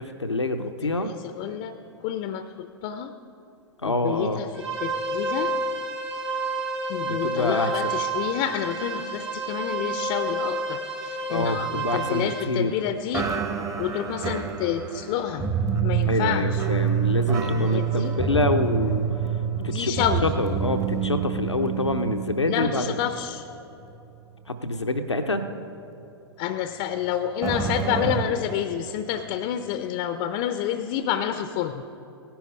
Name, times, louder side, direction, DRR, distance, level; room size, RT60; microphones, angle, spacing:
voice 1, 0.0-1.1 3.8-4.4 7.0-7.7 11.3-12.7 16.1-19.1 19.6-22.8 24.5-25.5, left 2 dB, 85° left, 6 dB, 0.7 m, -26 dB
voice 2, 0.6-1.7 2.0-3.1 3.8-5.5 6.9-13.3 13.8-15.5 15.8-16.7 17.4-18.2 19.6-20.2 22.5-23.5 26.4-31.9, left 10 dB, 40° left, 10 dB, 0.6 m, -29 dB
sound 1, 4.5-12.4, right 2 dB, 85° right, 3.2 m, -29 dB
sound 2, 11.4-12.7 13.1-23.5 23.8-24.0 24.7-24.8 27.4-28.2, right 7 dB, 20° right, 1.0 m, -27 dB
17.0 x 10.5 x 5.3 m, 2.9 s
figure-of-eight pair, 100°, 14 cm